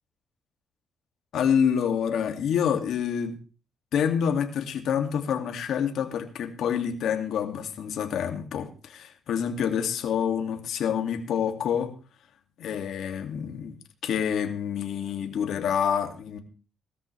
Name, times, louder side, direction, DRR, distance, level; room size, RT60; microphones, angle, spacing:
voice 1, 1.3-3.4 3.9-11.9 12.6-13.7 14.0-16.4, left 8 dB, 70° left, 4 dB, 2.3 m, -27 dB
18.5 x 13.5 x 3.4 m, 0.36 s
cardioid pair, 90°, 0 cm